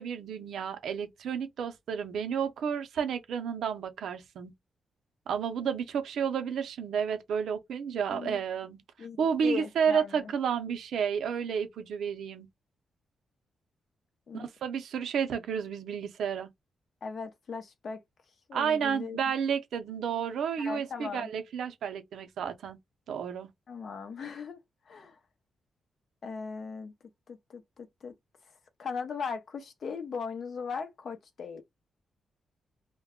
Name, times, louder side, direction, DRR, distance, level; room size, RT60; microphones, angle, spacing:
voice 1, 0.0-4.5 5.3-8.8 9.2-12.5 14.3-16.5 18.5-22.8 23.1-23.5, right 7 dB, 80° right, 0.5 m, -31 dB
voice 2, 9.0-10.3 14.3-14.5 17.0-18.0 18.5-19.2 20.6-21.3 23.7-24.6 24.9-25.1 26.2-26.9 27.3-28.1 28.8-31.6, left 5 dB, 60° left, 0.6 m, -38 dB
2.2 x 2.1 x 3.5 m
cardioid pair, 85°, 0 cm